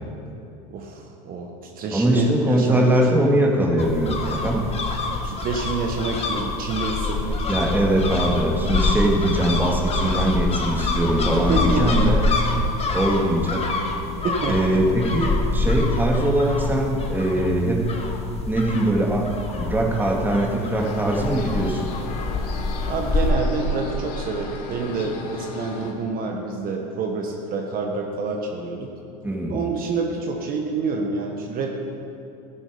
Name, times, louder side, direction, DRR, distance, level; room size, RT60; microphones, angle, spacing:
voice 1, 0.7-3.2 5.2-7.6 11.5-12.0 14.2-14.6 22.9-28.9 29.5-31.7, right 4 dB, 45° right, 1 dB, 1.6 m, -28 dB
voice 2, 1.9-4.6 7.5-12.2 12.9-13.6 14.5-17.8 18.5-21.9 29.2-29.6, right 1 dB, 10° right, -1 dB, 2.4 m, -21 dB
sound 1, 3.8-23.3, left 3 dB, 30° left, 1.8 m, -26 dB
sound 2, 20.8-25.9, left 3 dB, 75° left, 2.0 m, -36 dB
13.5 x 10.0 x 5.2 m, 2.8 s
supercardioid pair, 105°, 20 cm